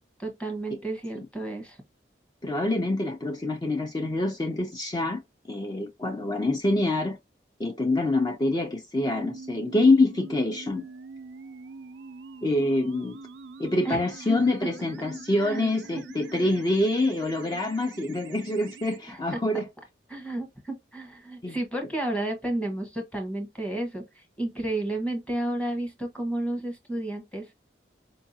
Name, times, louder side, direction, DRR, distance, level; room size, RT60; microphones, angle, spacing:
voice 1, 0.2-1.8 13.8-14.1 15.4-15.7 16.3-16.5 19.1-19.4 20.1-27.5, right 1 dB, 5° left, 0.9 m, -32 dB
voice 2, 2.4-5.2 5.5-7.2 7.6-10.8 12.4-13.2 13.6-19.7 21.4-21.6, left 2 dB, 20° left, 0.4 m, -25 dB
sound 1, 9.0-19.0, right 4 dB, 85° right, 0.4 m, -44 dB
4.5 x 2.6 x 2.6 m
head